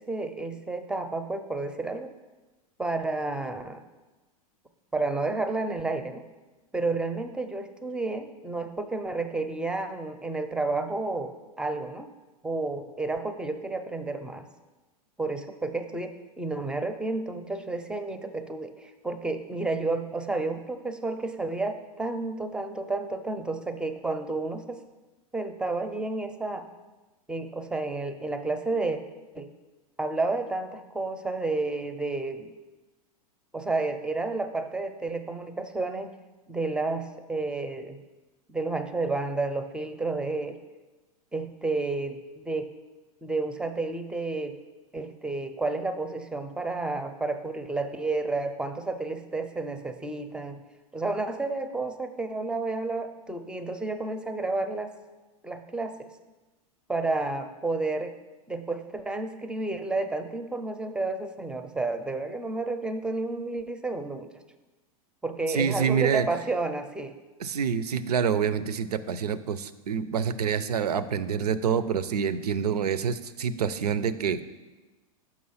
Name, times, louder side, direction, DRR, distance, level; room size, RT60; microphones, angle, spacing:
voice 1, 0.0-2.1 2.8-3.8 4.9-6.2 6.7-12.1 12.4-14.5 15.2-24.8 25.3-26.7 27.3-29.0 29.3-29.5 30.0-32.5 33.5-36.1 36.5-38.0 38.5-40.6 41.3-42.7 43.2-44.6 44.9-50.6 50.9-54.9 55.4-56.1 56.9-58.1 58.5-64.3 65.2-67.2, right 3 dB, 5° right, 9 dB, 0.4 m, -31 dB
voice 2, 65.5-66.3 67.4-74.4, right 7 dB, 90° right, 14 dB, 0.5 m, -27 dB
6.1 x 5.8 x 5.6 m, 1.2 s
hypercardioid pair, 115°, 19 cm